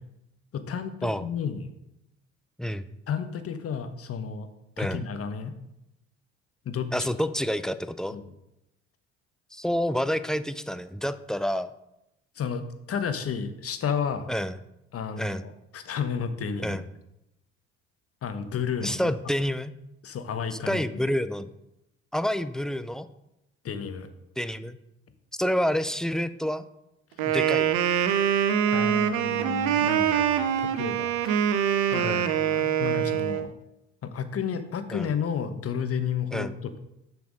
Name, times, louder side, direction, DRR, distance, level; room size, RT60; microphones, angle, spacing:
voice 1, 0.5-1.7 3.1-4.5 4.8-5.6 6.6-7.1 8.1-8.3 12.3-14.3 14.9-16.8 18.2-19.1 20.0-21.0 23.6-24.1 27.2-27.3 28.7-31.7 31.9-33.5 34.0-36.8, left 7 dB, 40° left, 9 dB, 1.1 m, -32 dB
voice 2, 6.9-8.2 9.5-11.7 14.3-14.5 15.2-15.4 16.6-16.8 18.8-19.7 20.5-21.5 22.1-23.1 24.4-24.8 25.4-26.7 27.3-27.7 32.0-32.3 34.9-35.1 36.3-36.5, equal, ahead, 12 dB, 0.4 m, -28 dB
Wind instrument woodwind instrument, 27.2-33.5, right 9 dB, 65° right, 0.8 m, -24 dB
7.2 x 6.0 x 4.9 m, 0.87 s
hypercardioid pair, 60°, 35 cm